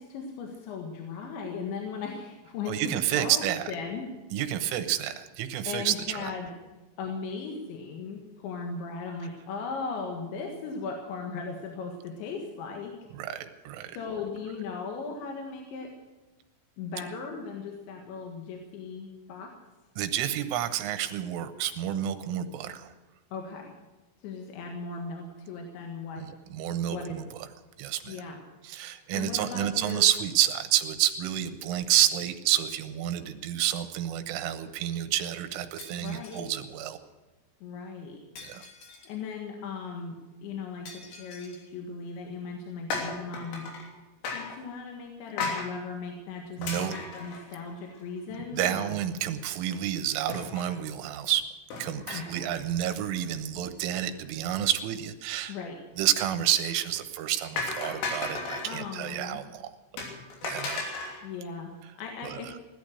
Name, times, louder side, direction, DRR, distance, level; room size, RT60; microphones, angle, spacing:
voice 1, 0.0-4.1 5.7-6.5 7.0-12.9 13.9-15.9 16.8-19.5 23.3-23.7 24.2-26.2 26.9-27.2 28.1-28.4 29.1-30.1 35.9-36.5 37.6-38.2 39.1-40.2 40.4-43.7 44.2-49.0 52.1-52.5 55.5-55.8 58.6-59.4 61.2-61.7 62.0-62.5, left 5 dB, 70° left, 2 dB, 3.8 m, -37 dB
voice 2, 2.7-3.7 4.3-6.3 13.1-14.0 20.0-22.9 26.2-27.5 27.8-28.2 28.6-37.0 38.4-38.6 45.6-45.7 46.6-46.9 48.5-51.4 51.8-55.6 56.0-59.7 60.4-60.8 62.2-62.4, right 12 dB, 80° right, 9 dB, 3.6 m, -29 dB
Shatter, 35.8-36.6 38.3-39.2 40.8-41.7, left 4 dB, 50° left, 3.0 m, -48 dB
sound 1, 42.9-43.9 44.2-44.6 45.4-45.7 46.6-48.0 48.3-48.4 48.7-48.8 50.3-50.8 51.7-52.5 52.8-53.1 56.7-57.0 57.6-58.8 60.0-61.2, left 3 dB, 85° left, 5.7 m, -35 dB
17.0 x 12.5 x 6.5 m, 1.2 s
omnidirectional pair, 5.7 m